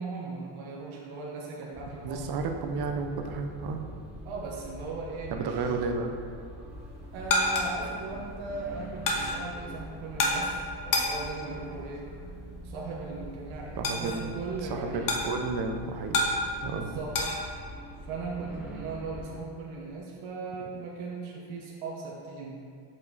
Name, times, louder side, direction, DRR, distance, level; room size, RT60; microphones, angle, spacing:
voice 1, 0.0-2.4 4.2-5.7 7.1-12.0 12.6-15.1 16.7-17.1 18.1-22.6, right 3 dB, 70° right, -3 dB, 1.3 m, -38 dB
sound 1, 1.7-19.4, equal, ahead, 1.1 m, -44 dB
voice 2, 2.0-3.9 5.3-6.1 13.8-16.2 16.6-16.9, right 4 dB, 50° right, 4 dB, 0.9 m, -32 dB
sound 2, 6.7-17.4, left 2 dB, 40° left, 1.2 m, -32 dB
6.9 x 5.5 x 4.1 m, 2.2 s
cardioid pair, 120°, 49 cm